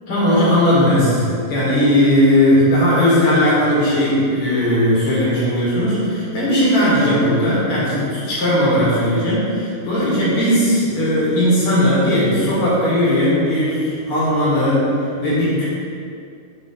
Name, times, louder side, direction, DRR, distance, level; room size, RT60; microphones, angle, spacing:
voice 1, 0.1-14.9 15.2-15.6, left 1 dB, 50° left, -8 dB, 1.9 m, -17 dB
7.1 x 3.9 x 3.8 m, 2.4 s
omnidirectional pair, 4.3 m